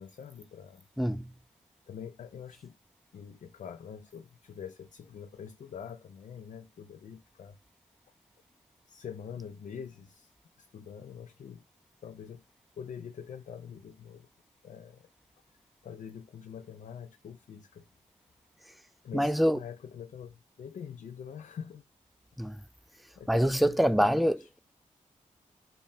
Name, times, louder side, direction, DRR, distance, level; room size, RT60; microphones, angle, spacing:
voice 1, 0.0-0.9 1.9-2.8 3.1-7.6 8.9-10.3 10.6-11.6 12.0-12.4 12.7-14.3 14.6-15.1 15.8-17.8 19.0-21.8 23.2-24.5, left 7 dB, 70° left, 0.4 m, -45 dB
voice 2, 1.0-1.3 19.1-19.6 22.4-22.6 23.3-24.6, equal, ahead, 0.3 m, -25 dB
5.3 x 2.3 x 2.6 m
cardioid pair, 50°, 13 cm